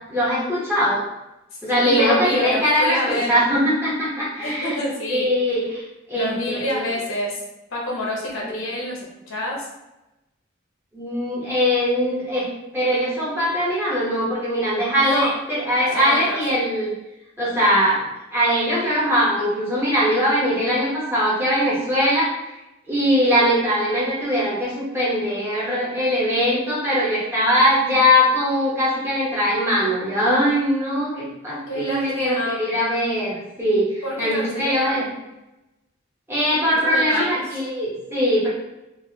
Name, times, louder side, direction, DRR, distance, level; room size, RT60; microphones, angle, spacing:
voice 1, 0.1-1.0 1.6-4.8 5.1-5.8 6.1-6.8 8.4-8.5 10.9-12.5 12.7-16.9 17.4-18.0 18.3-22.3 22.9-35.1 36.3-38.5, equal, 10° right, -9 dB, 1.0 m, -21 dB
voice 2, 1.7-3.4 4.4-5.3 6.1-7.4 7.7-9.0 9.3-9.7 15.0-15.3 15.9-16.4 31.7-32.6 34.0-35.1 36.8-37.4, left 1 dB, 70° left, -3 dB, 0.9 m, -27 dB
3.2 x 2.6 x 2.8 m, 0.95 s
head